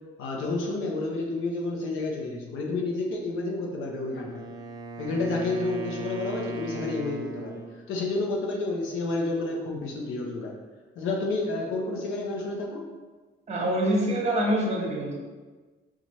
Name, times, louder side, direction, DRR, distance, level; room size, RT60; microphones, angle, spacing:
voice 1, 0.2-4.4 5.0-10.5 11.0-12.8, left 2 dB, 85° left, 0 dB, 0.7 m, -30 dB
Wind instrument woodwind instrument, 3.9-7.8, right 3 dB, 20° right, 0.4 m, -38 dB
voice 2, 13.5-15.2, right 1 dB, 35° right, -2 dB, 1.0 m, -25 dB
4.1 x 2.4 x 3.0 m, 1.3 s
cardioid pair, 90°, 20 cm